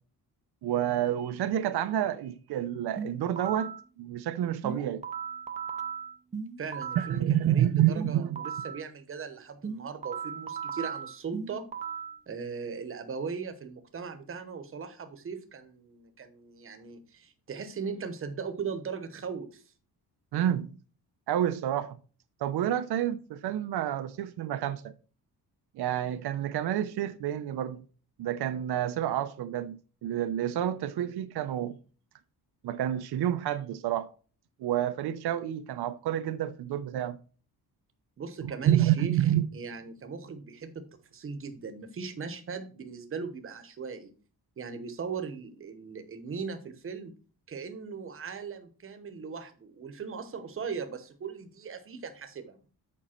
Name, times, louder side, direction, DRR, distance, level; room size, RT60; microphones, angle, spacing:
voice 1, 0.6-5.0 7.0-8.4 20.3-20.7 21.3-22.0 22.4-24.9 25.8-27.8 28.2-31.8 32.6-34.1 34.6-37.2 38.4-39.5, right 11 dB, 85° right, 0.7 m, -29 dB
sound 1, 3.0-3.8 4.6-7.2 8.0-8.8 9.6-12.2, right 6 dB, 20° right, 0.5 m, -37 dB
voice 2, 6.6-11.7 12.3-19.6 38.2-39.2 39.5-40.8 41.1-44.1 44.6-47.1 47.5-52.6, right 5 dB, 35° right, 1.0 m, -38 dB
7.5 x 5.3 x 4.3 m
wide cardioid pair, 175°, 38 cm